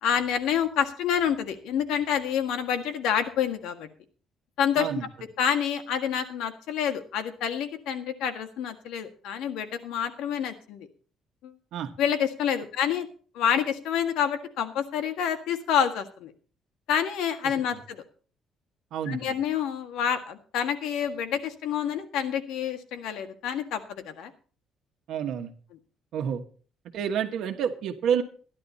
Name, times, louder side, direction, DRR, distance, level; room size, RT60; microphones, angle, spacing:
voice 1, 0.0-3.9 4.6-4.9 5.4-10.9 11.4-11.5 12.0-13.1 13.4-16.3 16.9-18.0 19.1-24.3, left 8 dB, 85° left, 8 dB, 1.7 m, -28 dB
voice 2, 4.8-5.1 11.7-11.9 18.9-19.3 25.1-25.5 26.1-26.4 26.9-28.2, right 8 dB, 65° right, 4 dB, 1.4 m, -28 dB
13.5 x 11.0 x 4.2 m, 0.41 s
cardioid pair, 170°, 0 cm